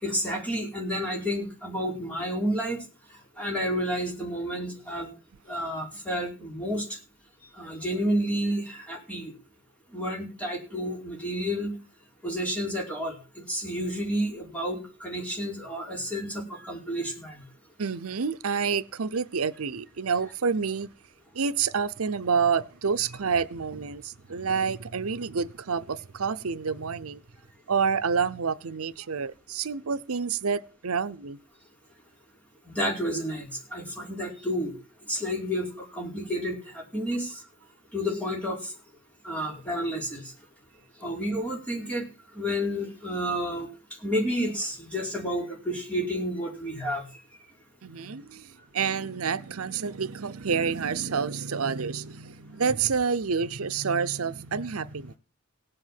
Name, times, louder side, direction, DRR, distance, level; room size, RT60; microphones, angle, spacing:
voice 1, 0.0-2.8 3.4-5.1 5.5-6.9 7.6-9.3 9.9-11.8 12.2-13.1 13.5-17.4 32.7-34.7 35.1-37.3 37.9-38.7 39.2-40.2 41.0-42.1 42.3-43.7 44.0-47.0, equal, 5° left, 4.8 m, -30 dB
voice 2, 17.8-20.9 21.3-27.2 27.7-31.4 47.8-55.1, right 5 dB, 80° right, 0.7 m, -28 dB
18.0 x 7.9 x 7.5 m
head